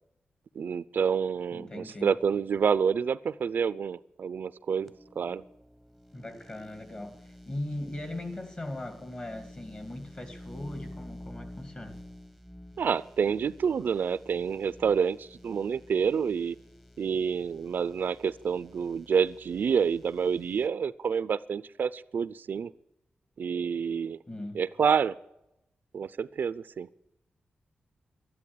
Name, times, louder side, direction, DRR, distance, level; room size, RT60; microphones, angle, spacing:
voice 1, 0.6-5.4 12.8-16.5 17.0-22.7 23.4-24.2 24.5-25.2 25.9-26.9, right 6 dB, 70° right, 0.5 m, -28 dB
voice 2, 1.5-2.1 6.1-12.0 24.3-24.6, left 1 dB, 35° left, 2.5 m, -39 dB
sound 1, 4.9-20.7, left 1 dB, 5° left, 1.1 m, -50 dB
12.5 x 11.0 x 9.9 m
wide cardioid pair, 105°, 3 cm